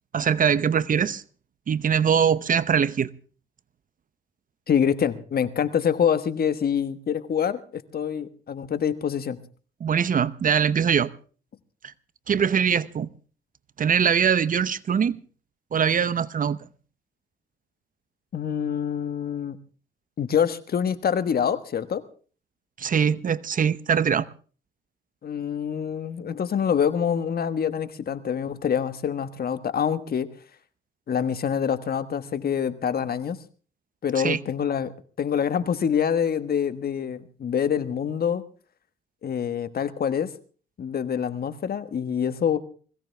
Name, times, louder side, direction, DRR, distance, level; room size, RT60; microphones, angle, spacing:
voice 1, 0.1-1.2 1.7-3.1 9.8-11.1 12.3-13.1 13.8-15.2 15.7-16.6 22.8-24.3 34.2-34.4, right 7 dB, 45° right, 0.8 m, -22 dB
voice 2, 4.7-9.4 18.3-19.6 20.2-22.0 25.2-30.3 31.1-33.4 34.0-34.9 35.2-38.4 39.2-40.3 40.8-42.6, left 8 dB, 50° left, 1.5 m, -26 dB
21.0 x 16.5 x 3.4 m
cardioid pair, 90°, 20 cm